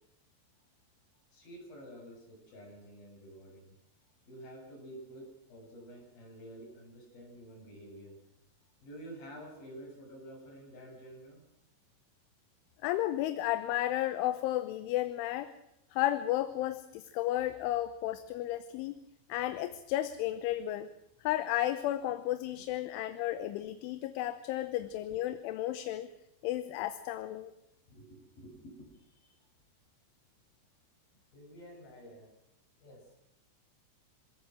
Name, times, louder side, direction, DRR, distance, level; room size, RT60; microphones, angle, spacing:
voice 1, 1.3-3.8 4.3-8.2 8.8-11.4 22.6-22.7 27.9-29.4 31.3-32.3 32.8-33.2, right 1 dB, 45° left, -1 dB, 9.3 m, -50 dB
voice 2, 12.8-15.5 15.9-19.0 19.3-20.9 21.2-26.1 26.4-27.5, left 14 dB, 80° left, 11 dB, 3.3 m, -33 dB
26.5 x 17.5 x 6.3 m, 0.86 s
omnidirectional pair, 5.6 m